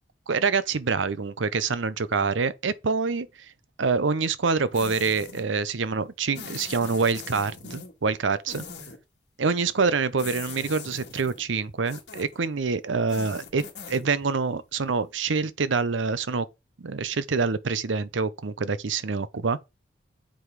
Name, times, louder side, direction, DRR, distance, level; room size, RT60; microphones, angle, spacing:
voice 1, 0.3-3.3 3.8-8.6 9.4-16.5 16.8-19.6, right 4 dB, 85° right, 0.7 m, -26 dB
sound 1, 4.7-5.5 6.3-7.9 8.5-9.0 10.2-11.4 11.9-12.4 13.0-14.1, left 5 dB, 60° left, 1.9 m, -41 dB
7.8 x 5.0 x 4.7 m
head